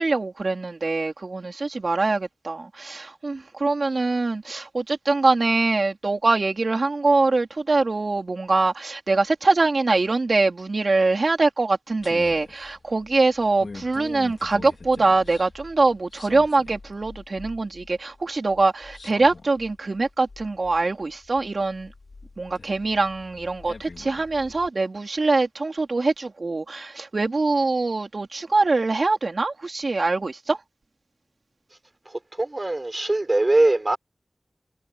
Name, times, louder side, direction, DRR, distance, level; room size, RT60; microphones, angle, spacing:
voice 1, 0.0-21.9 22.4-30.6, right 3 dB, 75° right, 4.1 m, -23 dB
sound 1, 12.0-24.7, left 3 dB, 80° left, 4.2 m, -44 dB
voice 2, 32.0-34.0, right 2 dB, 45° right, 4.5 m, -22 dB
cardioid pair, 40°, 0 cm